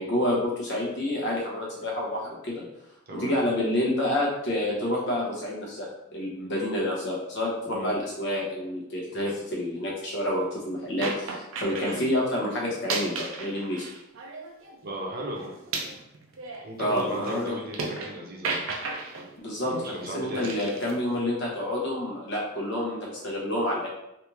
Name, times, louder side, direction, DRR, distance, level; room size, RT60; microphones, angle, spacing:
voice 1, 0.0-2.6 3.1-13.9 16.8-17.5 19.4-19.7 20.0-23.9, left 1 dB, 60° left, -4 dB, 1.1 m, -28 dB
sound 1, 11.0-12.0 12.7-14.8 15.1-18.1 18.4-19.3 20.4-20.9, right 3 dB, 80° right, 0.5 m, -34 dB
voice 2, 14.8-15.5 16.6-18.7 19.6-20.5, right 1 dB, 50° right, -2 dB, 0.8 m, -36 dB
3.4 x 2.7 x 3.0 m, 0.84 s
head